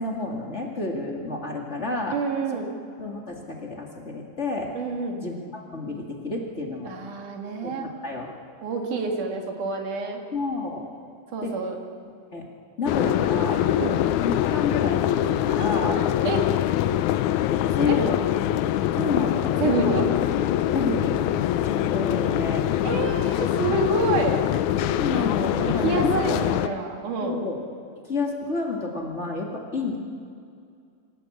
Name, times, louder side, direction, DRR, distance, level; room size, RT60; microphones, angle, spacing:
voice 1, 0.0-2.2 3.0-4.7 5.2-6.9 7.6-8.3 10.3-10.9 11.4-11.5 12.3-12.5 12.8-13.6 14.2-16.0 17.7-18.2 18.9-19.6 19.8-20.0 20.7-21.2 21.6-22.7 25.0-26.7 27.2-27.6 28.0-30.0, left 3 dB, 25° left, 0 dB, 2.2 m, -29 dB
voice 2, 2.1-2.7 4.7-5.2 6.8-7.9 8.6-10.2 11.3-11.8 13.8-14.0 16.2-16.4 17.8-18.0 19.6-20.1 22.8-24.4 25.7-27.4, right 4 dB, 80° right, 3 dB, 3.7 m, -27 dB
sound 1, 12.9-26.7, left 12 dB, 80° left, 2.0 m, -24 dB
26.0 x 17.5 x 8.7 m, 2.4 s
omnidirectional pair, 3.5 m